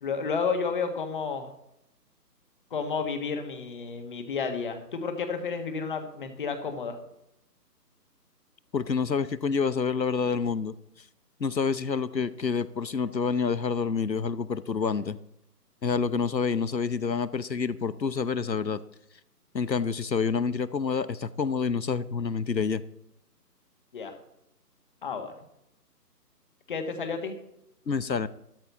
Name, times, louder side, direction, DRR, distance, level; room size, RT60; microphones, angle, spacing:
voice 1, 0.0-1.5 2.7-7.0 23.9-24.1 25.0-25.4 26.7-27.4, left 5 dB, 30° left, 6 dB, 1.7 m, -31 dB
voice 2, 8.7-10.7 11.4-15.2 15.8-18.8 19.5-22.8 27.9-28.3, left 5 dB, 85° left, 16 dB, 1.0 m, -28 dB
13.5 x 12.5 x 4.1 m, 0.81 s
figure-of-eight pair, 150°, 49 cm